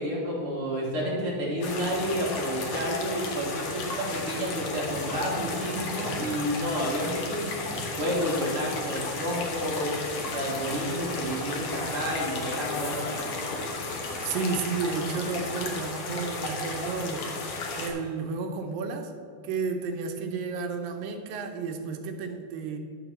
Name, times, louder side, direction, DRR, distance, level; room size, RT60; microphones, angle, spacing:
voice 1, 0.0-7.5 8.0-9.9 10.3-13.4, equal, 50° right, -5 dB, 2.0 m, -30 dB
sound 1, 1.6-17.9, left 3 dB, 60° left, 1.9 m, -34 dB
voice 2, 14.2-17.3 17.8-19.1 19.4-22.8, right 4 dB, 80° right, 4 dB, 2.4 m, -32 dB
11.5 x 3.9 x 7.1 m, 2.3 s
omnidirectional pair, 4.2 m